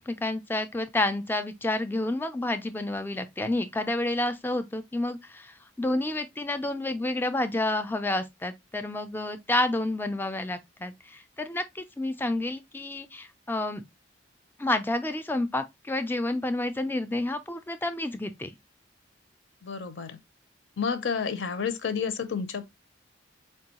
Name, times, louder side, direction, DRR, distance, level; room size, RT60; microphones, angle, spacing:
voice 1, 0.0-13.8 14.6-18.5, left 2 dB, 10° left, 0.3 m, -29 dB
voice 2, 19.6-20.2 20.8-22.6, left 6 dB, 70° left, 0.5 m, -30 dB
4.6 x 2.2 x 2.8 m
head